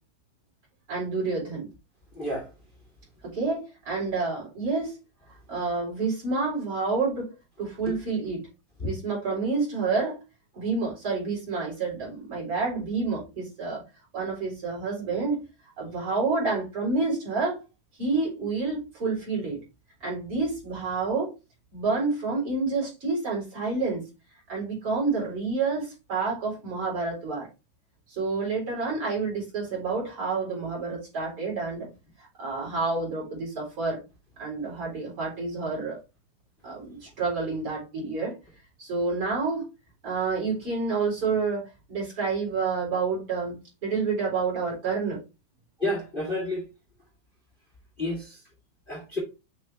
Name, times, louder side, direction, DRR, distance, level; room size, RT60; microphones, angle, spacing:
voice 1, 0.9-1.7 3.2-5.0 5.5-7.3 7.6-8.4 8.8-10.2 10.5-13.8 14.1-15.4 15.8-17.6 18.0-19.6 20.0-21.3 21.7-24.0 24.5-27.5 28.1-31.9 32.2-34.0 34.4-36.0 36.6-38.4 38.8-39.6 40.0-45.2, right 4 dB, 40° right, 4.7 m, -29 dB
voice 2, 2.1-2.5 7.9-8.0 45.8-46.6 48.0-48.4 48.9-49.2, left 1 dB, 20° left, 1.4 m, -30 dB
7.4 x 3.8 x 3.4 m
omnidirectional pair, 4.0 m